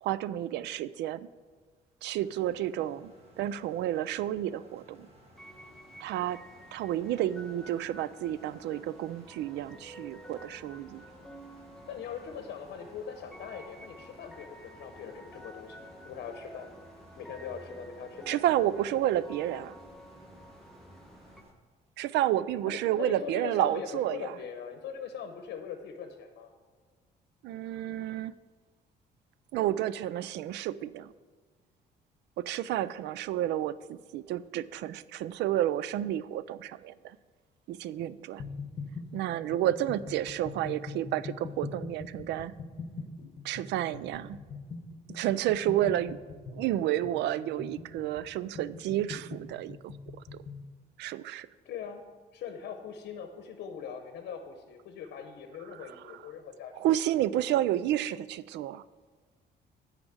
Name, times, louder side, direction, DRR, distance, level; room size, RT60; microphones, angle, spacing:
voice 1, 0.0-1.3 2.0-3.1 3.4-5.1 6.0-6.4 6.7-11.0 18.3-19.8 22.0-24.4 27.4-28.3 29.5-31.1 32.4-37.2 37.7-38.4 39.1-42.6 43.4-44.4 45.1-46.2 46.5-49.9 51.0-51.5 55.6-56.3 56.7-58.8, right 12 dB, 85° right, 17 dB, 0.4 m, -31 dB
sound 1, 2.2-21.5, right 1 dB, 35° right, 1.5 m, -58 dB
sound 2, 5.3-21.4, equal, ahead, 0.4 m, -51 dB
voice 2, 11.9-16.7 17.2-18.4 22.6-26.5 51.6-52.0 52.3-56.7, left 7 dB, 70° left, 6 dB, 0.9 m, -41 dB
sound 3, 38.4-50.7, left 4 dB, 40° left, 1.3 m, -42 dB
9.5 x 5.0 x 7.8 m, 1.4 s
cardioid pair, 145°, 17 cm